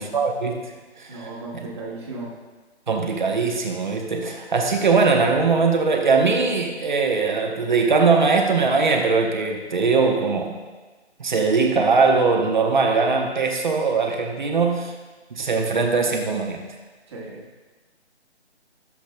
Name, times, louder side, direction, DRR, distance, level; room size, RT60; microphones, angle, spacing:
voice 1, 0.0-1.7 2.9-10.5 11.2-14.9 15.3-16.6, right 4 dB, 45° right, 2 dB, 1.0 m, -21 dB
voice 2, 1.1-2.3 17.1-17.4, right 2 dB, 25° right, -5 dB, 1.5 m, -35 dB
15.5 x 7.3 x 2.2 m, 1.3 s
figure-of-eight pair, 155°, 34 cm